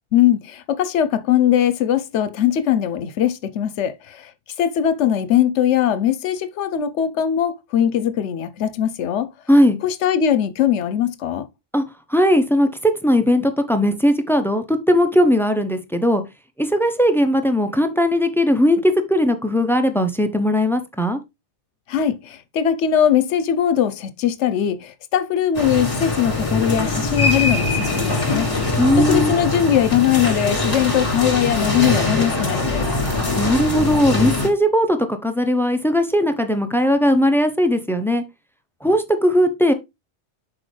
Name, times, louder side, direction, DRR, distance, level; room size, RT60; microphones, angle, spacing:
voice 1, 0.1-4.3 4.6-9.3 9.8-11.5 21.9-32.9, left 10 dB, 80° left, 1.0 m, -20 dB
voice 2, 9.5-9.8 11.7-11.8 12.1-16.2 16.6-21.2 28.8-29.3 33.4-38.2 38.8-39.7, equal, 5° left, 0.3 m, -18 dB
sound 1, 25.5-34.5, left 2 dB, 35° left, 2.1 m, -22 dB
6.4 x 4.6 x 3.2 m
omnidirectional pair, 1.2 m